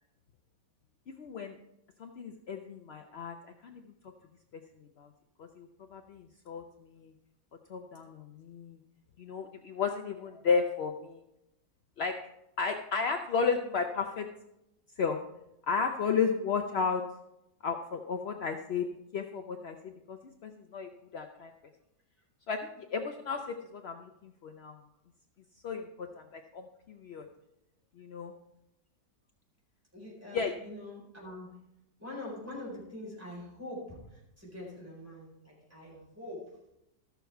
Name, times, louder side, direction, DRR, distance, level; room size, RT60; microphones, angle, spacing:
voice 1, 1.2-1.5 2.0-3.3 3.6-3.8 5.0-5.1 5.4-6.6 6.9-7.1 7.7-8.8 9.2-11.2 12.0-12.1 12.6-14.3 15.0-15.2 15.7-17.0 17.6-18.9 19.1-19.8 20.1-20.2 20.4-21.5 22.5-24.8 25.6-26.1 26.3-27.3 28.0-28.3 30.3-30.5, left 5 dB, 65° left, 5 dB, 0.6 m, -33 dB
voice 2, 29.9-31.5 32.0-36.5, left 1 dB, 10° right, -5 dB, 4.7 m, -44 dB
14.0 x 7.0 x 4.5 m, 0.85 s
omnidirectional pair, 1.9 m